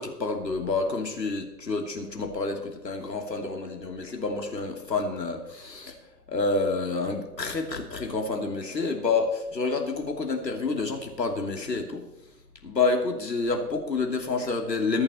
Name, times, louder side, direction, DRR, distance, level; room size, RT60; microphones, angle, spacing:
voice 1, 0.0-5.9 6.3-12.0 12.6-15.0, left 3 dB, 80° left, 3 dB, 2.8 m, -28 dB
21.5 x 8.7 x 4.3 m, 0.91 s
figure-of-eight pair, 115°, 49 cm